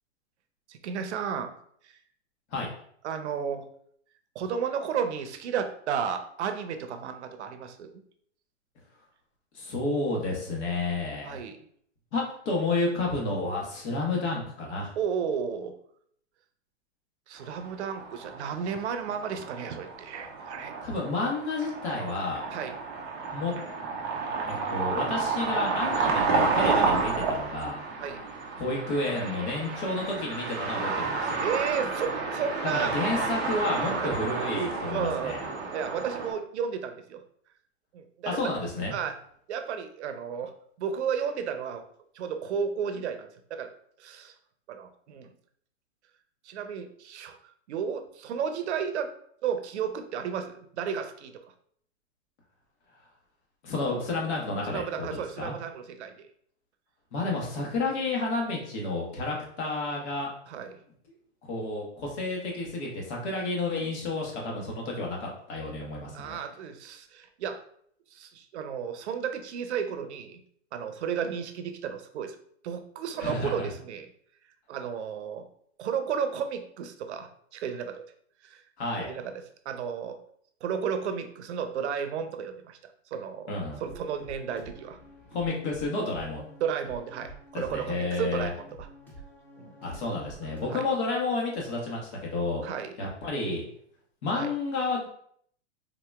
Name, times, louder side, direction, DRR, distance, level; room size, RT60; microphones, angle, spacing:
voice 1, 0.7-1.5 1.8-1.9 3.0-3.7 4.4-8.0 11.2-11.6 15.0-15.7 17.3-20.7 22.5-22.8 28.0-28.2 31.4-32.9 34.0-34.1 34.9-35.4 35.7-37.2 37.9-38.4 38.9-39.2 39.5-40.5 40.8-41.8 42.1-43.7 44.0-44.3 44.7-45.3 46.4-49.1 49.4-51.3 54.7-56.3 60.5-60.8 66.1-67.6 68.1-70.4 70.7-72.4 72.6-74.1 74.7-75.4 75.8-78.0 78.4-78.6 79.0-79.3 79.7-80.2 80.6-83.5 83.8-85.0 86.6-88.9 89.6-89.7 90.7-90.8 92.6-92.9 94.4-94.5, right 7 dB, 70° right, 8 dB, 0.6 m, -33 dB
voice 2, 9.5-11.4 12.1-14.9 20.8-22.5 23.3-23.5 24.5-27.8 28.6-31.4 32.6-35.4 38.2-38.9 53.6-55.5 57.1-60.3 61.4-66.4 73.2-73.7 78.8-79.1 83.5-83.8 85.3-86.4 87.5-88.5 89.8-92.6 93.0-93.6 94.2-95.1, left 2 dB, 65° left, -2 dB, 1.4 m, -31 dB
sound 1, 17.5-36.3, right 4 dB, 20° right, 0.3 m, -31 dB
sound 2, 83.8-90.6, right 1 dB, 5° left, 0.7 m, -48 dB
3.9 x 2.8 x 2.3 m, 0.65 s
hypercardioid pair, 130°, 36 cm